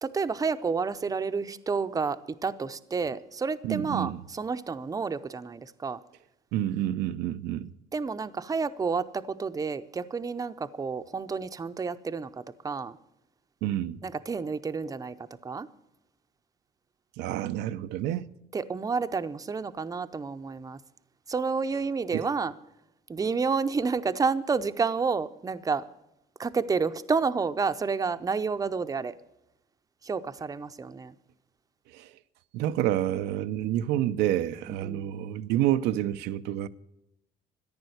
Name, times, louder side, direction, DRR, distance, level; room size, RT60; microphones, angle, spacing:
voice 1, 0.0-6.0 7.9-13.0 14.0-15.2 15.4-15.7 18.5-20.8 21.3-22.5 23.1-25.8 26.4-29.2 30.0-31.1 34.7-35.2, right 5 dB, 20° right, 0.7 m, -30 dB
voice 2, 3.6-4.2 6.5-7.7 13.6-14.0 17.2-18.3 22.1-22.2 31.9-32.1 32.5-36.7, right 12 dB, 90° right, 0.6 m, -28 dB
14.0 x 10.5 x 7.9 m
cardioid pair, 110°, 17 cm